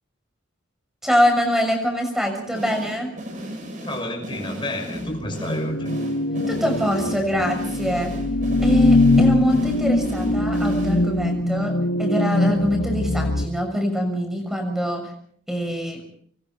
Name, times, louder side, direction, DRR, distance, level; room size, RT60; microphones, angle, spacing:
voice 1, 1.0-3.1 6.5-8.1 8.6-15.0 15.5-16.0, equal, ahead, 4 dB, 6.4 m, -24 dB
sound 1, 2.5-11.3, equal, 40° right, 7.5 m, -35 dB
voice 2, 3.8-5.9, left 1 dB, 25° left, 4 dB, 6.0 m, -30 dB
sound 2, 5.0-13.5, left 2 dB, 70° left, 2.0 m, -22 dB
27.5 x 23.0 x 4.4 m, 0.62 s
head